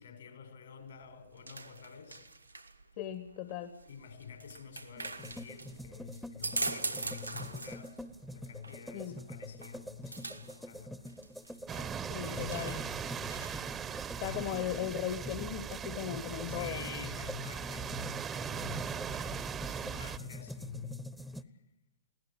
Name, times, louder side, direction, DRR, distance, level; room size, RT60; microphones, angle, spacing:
voice 1, 0.0-2.2 3.8-8.0 8.3-10.9 12.2-13.5 14.1-14.4 16.4-21.5, left 7 dB, 65° left, 4.9 m, -48 dB
sound 1, 0.8-13.8, right 3 dB, 90° right, 1.8 m, -43 dB
voice 2, 3.0-3.7 8.9-9.2 12.1-12.8 14.2-16.8, left 10 dB, 45° left, 1.6 m, -37 dB
sound 2, 5.0-21.4, equal, ahead, 1.0 m, -46 dB
sound 3, 11.7-20.2, right 7 dB, 20° right, 1.0 m, -39 dB
23.0 x 17.0 x 9.3 m
figure-of-eight pair, 105°, 0 cm